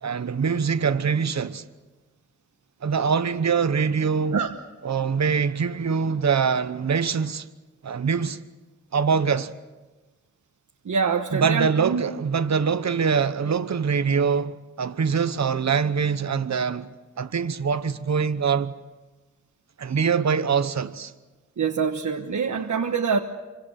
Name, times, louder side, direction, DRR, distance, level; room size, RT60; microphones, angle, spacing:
voice 1, 0.0-1.6 2.8-4.4 4.8-7.5 7.8-8.4 8.9-9.5 11.3-16.9 17.2-18.7 19.8-21.1, right 6 dB, 70° right, 1.0 m, -24 dB
voice 2, 10.8-12.0 21.6-23.2, right 5 dB, 90° right, 1.3 m, -25 dB
27.0 x 25.0 x 6.5 m
wide cardioid pair, 115°, 29 cm